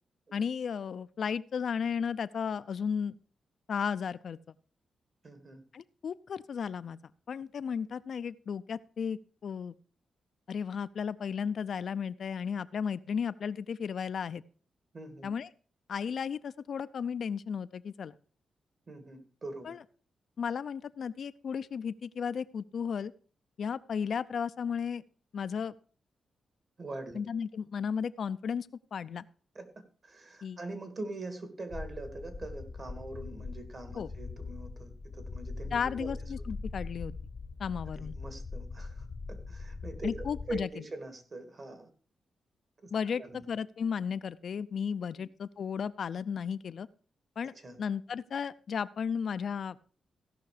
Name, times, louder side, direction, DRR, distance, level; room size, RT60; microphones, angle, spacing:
voice 1, 0.3-3.2 3.7-4.4 5.7-7.0 7.3-9.7 10.5-14.4 15.2-15.5 15.9-18.1 19.6-19.8 20.4-23.1 23.6-25.0 25.3-25.7 27.1-29.2 30.4-30.6 33.9-34.1 35.7-37.1 37.6-38.1 40.0-40.7 42.9-46.9 47.4-47.5 47.8-49.8, left 7 dB, 60° left, 13 dB, 0.4 m, -34 dB
voice 2, 5.2-5.6 14.9-15.3 18.9-19.8 26.8-27.2 29.5-29.7 30.0-36.1 38.0-41.9 42.8-43.4 45.1-45.2 47.6-47.8, right 2 dB, 45° right, 8 dB, 2.1 m, -43 dB
sound 1, 31.7-40.6, left 3 dB, 35° left, 0.8 m, -41 dB
16.0 x 5.8 x 4.9 m, 0.41 s
cardioid pair, 105°, 0 cm